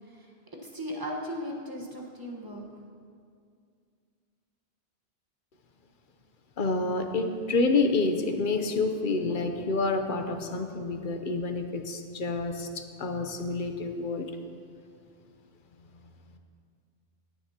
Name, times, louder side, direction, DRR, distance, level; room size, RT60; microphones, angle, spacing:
voice 1, 0.6-2.7, equal, 20° right, -1 dB, 1.3 m, -37 dB
voice 2, 6.6-14.3, left 3 dB, 50° left, 6 dB, 0.9 m, -28 dB
17.0 x 9.9 x 2.9 m, 2.3 s
omnidirectional pair, 1.1 m